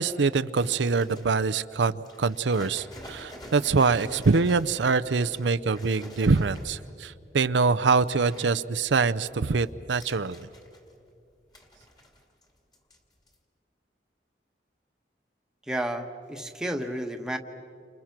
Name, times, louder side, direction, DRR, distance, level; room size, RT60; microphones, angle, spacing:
voice 1, 0.0-10.5, right 4 dB, 90° right, 11 dB, 0.6 m, -24 dB
sound 1, 0.6-1.6 2.1-7.0 7.7-8.6 9.0-11.1 11.5-12.5 12.7-13.0 13.3-13.4, equal, 25° left, 2.4 m, -47 dB
voice 2, 15.6-17.4, right 1 dB, 5° right, 4 dB, 1.2 m, -31 dB
30.0 x 27.0 x 6.0 m, 2.5 s
head